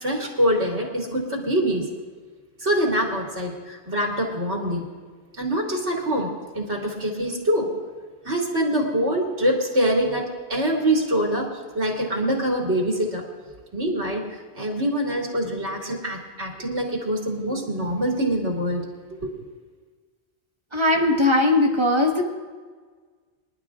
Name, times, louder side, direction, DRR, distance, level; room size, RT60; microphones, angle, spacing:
voice 1, 0.0-1.8 2.6-4.8 5.4-7.7 8.2-10.2 10.5-11.5 11.7-13.2 13.7-14.2 14.5-18.8 19.2-19.3, equal, 90° right, -2 dB, 3.0 m, -24 dB
voice 2, 20.7-22.2, left 2 dB, 25° right, 1 dB, 1.5 m, -19 dB
25.5 x 11.5 x 2.5 m, 1.5 s
omnidirectional pair, 1.1 m